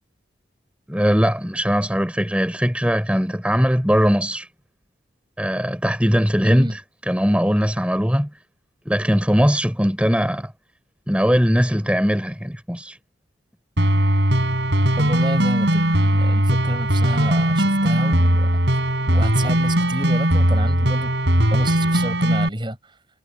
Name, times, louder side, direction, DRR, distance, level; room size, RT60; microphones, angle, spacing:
voice 1, 0.9-4.5 5.4-6.8 7.1-8.3 8.8-10.5 11.1-13.0, equal, 5° right, 5.2 m, -20 dB
voice 2, 6.4-6.8 15.0-18.6 19.1-21.1 21.5-22.9, right 1 dB, 25° right, 6.6 m, -30 dB
sound 1, 13.8-22.5, right 1 dB, 65° right, 7.1 m, -19 dB
head